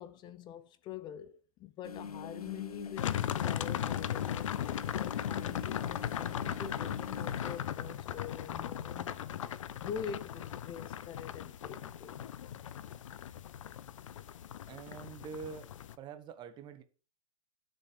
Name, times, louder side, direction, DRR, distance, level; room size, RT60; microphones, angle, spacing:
voice 1, 0.0-9.2 9.8-12.3, left 8 dB, 25° left, 0.8 m, -45 dB
sound 1, 1.8-7.6, left 6 dB, 80° left, 0.7 m, -44 dB
sound 2, 3.0-16.0, left 10 dB, 55° left, 0.8 m, -37 dB
voice 2, 14.7-15.7 16.0-16.8, right 6 dB, 25° right, 1.2 m, -45 dB
12.0 x 6.7 x 4.8 m
figure-of-eight pair, 115°, 19 cm